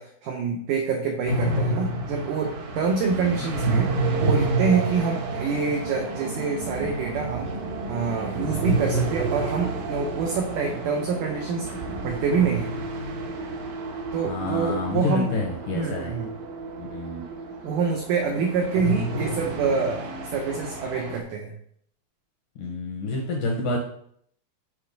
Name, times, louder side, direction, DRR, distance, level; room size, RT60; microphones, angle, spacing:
voice 1, 0.0-7.5 7.9-12.7 14.1-15.3 15.7-16.3 17.6-21.5, right 5 dB, 85° right, 1 dB, 1.8 m, -26 dB
sound 1, 1.2-21.2, right 2 dB, 65° right, 1.9 m, -29 dB
voice 2, 14.2-16.1 16.8-17.2 22.6-23.8, left 2 dB, 75° left, 0 dB, 2.0 m, -28 dB
6.3 x 4.5 x 5.1 m, 0.66 s
omnidirectional pair, 4.7 m